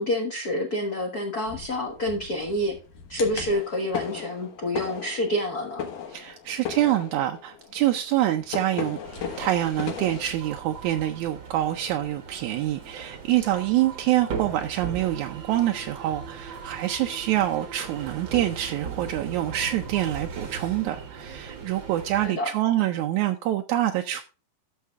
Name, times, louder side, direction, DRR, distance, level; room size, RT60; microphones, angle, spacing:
voice 1, 0.0-2.7 3.1-5.9 22.2-22.5, left 1 dB, 55° left, 1.0 m, -28 dB
sound 1, 1.5-10.3, left 7 dB, 75° left, 3.2 m, -37 dB
voice 2, 6.1-9.0 9.4-24.2, right 13 dB, 80° right, 1.7 m, -26 dB
sound 2, 9.0-22.3, right 6 dB, 55° right, 1.4 m, -38 dB
11.5 x 6.6 x 3.5 m
omnidirectional pair, 3.9 m